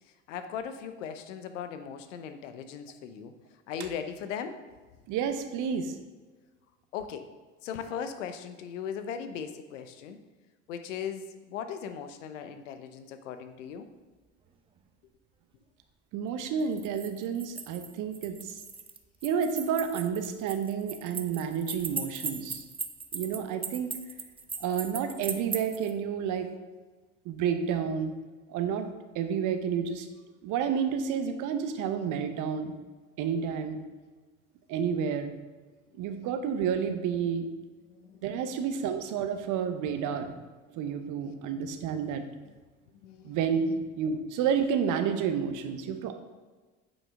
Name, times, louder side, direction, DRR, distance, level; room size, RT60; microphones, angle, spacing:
voice 1, 0.3-3.3 3.7-4.6 6.9-7.3 7.6-10.2 10.7-13.9 35.9-36.0 37.9-38.6 41.5-41.8 43.0-43.8, left 7 dB, 80° left, 9 dB, 0.8 m, -38 dB
voice 2, 5.1-5.9 16.1-18.5 19.2-22.6 23.1-23.9 24.6-26.5 27.3-28.1 28.5-28.9 29.1-30.1 30.4-32.7 33.2-33.8 34.7-35.3 36.0-37.5 38.2-40.4 40.7-42.2 43.2-46.1, right 7 dB, 55° right, 8 dB, 0.9 m, -30 dB
sound 1, 16.6-25.9, right 4 dB, 15° right, 0.6 m, -39 dB
8.6 x 5.3 x 3.6 m, 1.3 s
hypercardioid pair, 65°, 37 cm